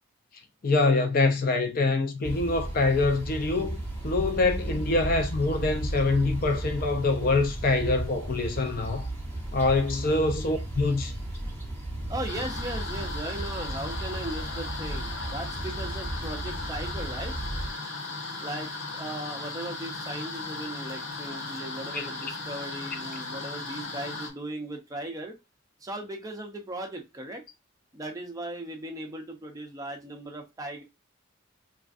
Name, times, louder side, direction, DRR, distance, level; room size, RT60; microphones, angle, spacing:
voice 1, 0.6-9.1 9.5-11.1 21.9-22.1, left 3 dB, 40° left, 0.4 m, -25 dB
sound 1, 2.2-17.7, right 1 dB, 10° left, 1.2 m, -34 dB
voice 2, 12.1-17.3 18.4-25.4 25.8-27.4 27.9-30.8, right 1 dB, 15° right, 0.5 m, -37 dB
sound 2, 12.3-24.3, left 3 dB, 60° left, 0.8 m, -37 dB
3.3 x 2.5 x 2.4 m
head